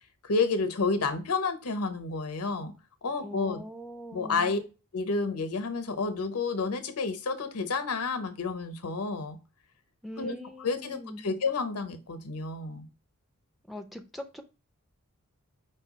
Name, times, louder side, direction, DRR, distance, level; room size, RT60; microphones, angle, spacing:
voice 1, 0.2-2.7 3.0-3.6 4.1-4.6 4.9-9.4 10.2-10.3 10.6-12.9, left 4 dB, 85° left, 0.8 m, -30 dB
voice 2, 3.2-4.6 10.0-11.3 13.7-14.4, left 1 dB, ahead, 0.3 m, -41 dB
5.3 x 2.3 x 3.9 m
head